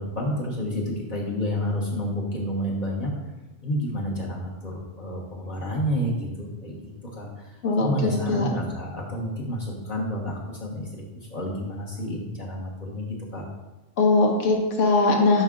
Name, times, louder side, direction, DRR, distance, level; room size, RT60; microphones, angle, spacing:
voice 1, 0.0-3.1 3.6-7.5 7.8-10.9 11.1-13.4, equal, 40° left, -4 dB, 1.2 m, -30 dB
voice 2, 7.6-8.5 14.0-15.4, left 3 dB, 75° left, 1 dB, 1.3 m, -21 dB
5.6 x 5.5 x 3.7 m, 1.1 s
omnidirectional pair, 1.3 m